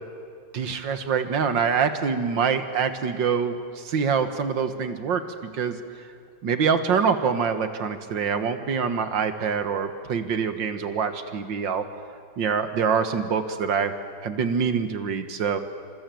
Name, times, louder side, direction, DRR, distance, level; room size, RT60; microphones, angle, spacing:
voice 1, 0.5-5.2 5.5-5.8 6.4-11.8 12.4-13.9 14.2-15.6, right 6 dB, 80° right, 9 dB, 2.2 m, -25 dB
28.0 x 25.5 x 7.8 m, 2.1 s
omnidirectional pair, 2.0 m